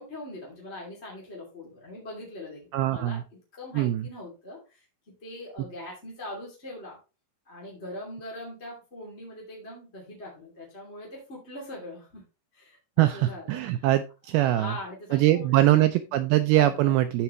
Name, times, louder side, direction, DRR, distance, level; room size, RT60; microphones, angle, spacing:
voice 1, 0.0-3.2 3.5-4.8 5.2-7.0 7.5-12.2 12.5-13.6 14.3-15.8 16.1-16.9, left 1 dB, 20° left, -3 dB, 2.1 m, -41 dB
voice 2, 2.7-3.2 3.7-4.1 13.0-14.7 15.1-17.2, right 15 dB, 85° right, 10 dB, 2.2 m, -22 dB
13.5 x 4.7 x 3.1 m, 0.30 s
omnidirectional pair, 4.8 m